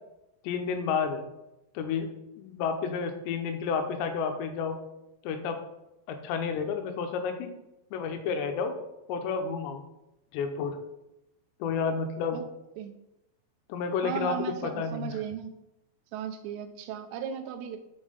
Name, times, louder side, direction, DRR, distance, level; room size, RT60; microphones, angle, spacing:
voice 1, 0.4-1.3 1.7-2.1 2.4-4.8 5.2-5.6 6.1-7.5 7.9-8.7 9.1-9.8 10.3-10.8 11.6-12.4 13.7-14.4 14.6-15.1, left 6 dB, 90° left, 6 dB, 3.1 m, -30 dB
voice 2, 14.0-15.5 16.1-17.8, right 8 dB, 90° right, 7 dB, 3.0 m, -36 dB
7.2 x 5.5 x 5.2 m, 0.90 s
omnidirectional pair, 5.0 m